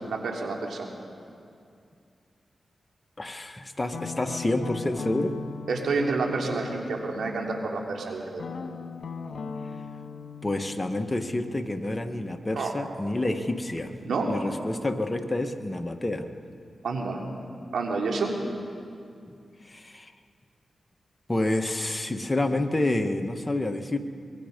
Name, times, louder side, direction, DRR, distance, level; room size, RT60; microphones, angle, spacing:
voice 1, 0.1-0.9 5.7-8.4 12.5-12.7 14.0-14.3 16.8-17.2 17.7-18.3, right 3 dB, 85° right, 0 dB, 3.2 m, -29 dB
voice 2, 3.2-5.4 10.4-13.9 14.3-16.3 19.3-19.4 19.6-20.1 21.3-24.0, left 2 dB, 25° left, 6 dB, 1.7 m, -28 dB
Guitar, 3.9-7.7 8.4-13.1, left 5 dB, 70° left, 1.6 m, -40 dB
25.0 x 22.0 x 5.4 m, 2.4 s
cardioid pair, 45°, 0 cm